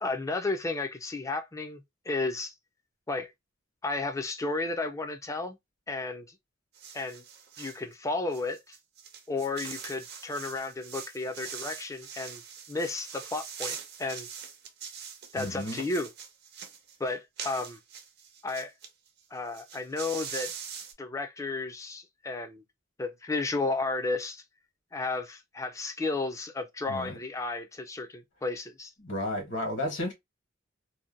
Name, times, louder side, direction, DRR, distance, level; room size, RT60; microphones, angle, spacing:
voice 1, 0.0-2.5 3.1-3.3 3.8-5.6 5.9-6.4 6.9-7.2 7.6-8.8 9.3-12.4 12.7-14.3 15.3-16.1 17.0-17.8 18.4-18.7 19.3-20.5 21.0-22.6 23.0-24.4 24.9-28.9, left 3 dB, 15° left, 0.3 m, -33 dB
sound 1, 6.7-7.8 8.3-18.9 19.2-19.3 19.5-20.9, right 7 dB, 50° right, 0.5 m, -43 dB
voice 2, 15.3-15.8 26.9-27.2 29.0-30.1, left 1 dB, 65° left, 1.2 m, -33 dB
2.7 x 2.1 x 2.4 m
head